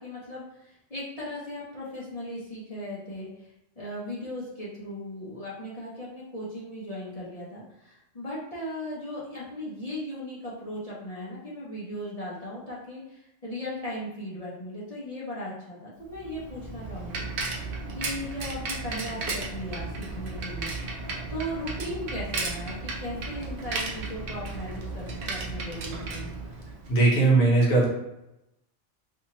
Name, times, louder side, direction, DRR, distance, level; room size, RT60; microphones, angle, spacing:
voice 1, 0.0-3.5 3.8-17.6 17.9-21.0 21.3-26.4, equal, 40° left, -6 dB, 0.6 m, -37 dB
Bicycle, 16.1-27.0, right 3 dB, 60° right, 0.6 m, -34 dB
voice 2, 26.9-27.9, right 2 dB, 60° left, -3 dB, 1.0 m, -19 dB
2.7 x 2.6 x 2.8 m, 0.88 s
omnidirectional pair, 1.3 m